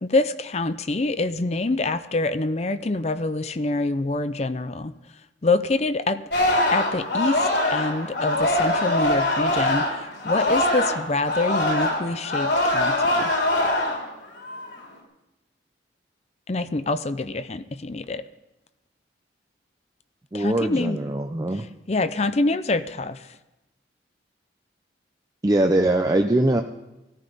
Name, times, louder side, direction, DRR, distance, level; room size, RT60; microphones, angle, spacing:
voice 1, 0.0-4.9 5.4-6.2 6.7-13.3 16.5-18.2 20.3-21.0 21.5-23.2, left 2 dB, 35° left, 12 dB, 0.6 m, -26 dB
Singing, 6.3-11.0 11.2-14.0 14.4-14.8, left 1 dB, 70° left, 3.8 m, -23 dB
voice 2, 20.3-21.6 25.4-26.6, right 1 dB, 20° right, 4 dB, 0.6 m, -22 dB
17.0 x 14.0 x 5.4 m, 0.97 s
head